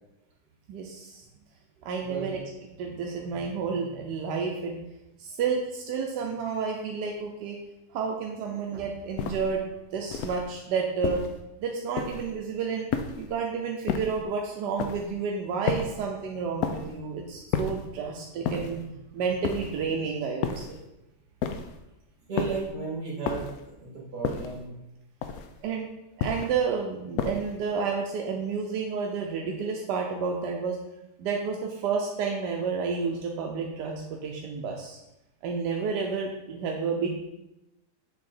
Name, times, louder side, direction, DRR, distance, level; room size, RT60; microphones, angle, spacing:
voice 1, 0.7-1.2 1.8-2.4 2.8-4.8 5.2-7.6 7.9-9.7 9.9-11.2 11.6-12.9 13.2-18.8 19.1-20.8 25.6-25.9 26.2-30.8 31.2-35.0 35.4-37.1, right 5 dB, 90° right, 1 dB, 1.3 m, -30 dB
voice 2, 2.0-2.3 22.3-24.7, right 5 dB, 65° right, -8 dB, 2.5 m, -34 dB
sound 1, 9.2-9.6 10.1-10.5 11.0-11.4 12.0-12.4 12.9-13.3 13.9-14.2 14.8-15.1 15.7-16.1 16.6-17.0 17.5-17.9 18.4-18.9 19.4-19.9 20.4-20.8 21.4-21.8 22.4-22.7 23.2-23.7 24.2-24.6 25.2-25.6 26.2-26.6 27.2-27.6, left 7 dB, 70° left, 1.0 m, -31 dB
7.4 x 3.5 x 4.3 m, 0.92 s
omnidirectional pair, 1.8 m